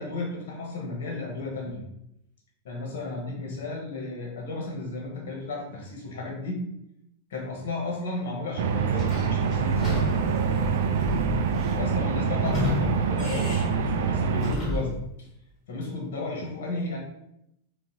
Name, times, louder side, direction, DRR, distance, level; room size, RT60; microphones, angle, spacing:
voice 1, 0.0-1.8 2.6-6.7 7.3-9.9 11.7-15.3 15.7-17.0, left 2 dB, 55° left, -1 dB, 1.2 m, -33 dB
sound 1, 8.6-14.5, right 6 dB, 55° right, 0.3 m, -25 dB
Sliding door / Squeak, 8.9-15.0, left 2 dB, 15° left, 1.5 m, -32 dB
4.1 x 2.4 x 3.8 m, 0.80 s
figure-of-eight pair, 90°, 0 cm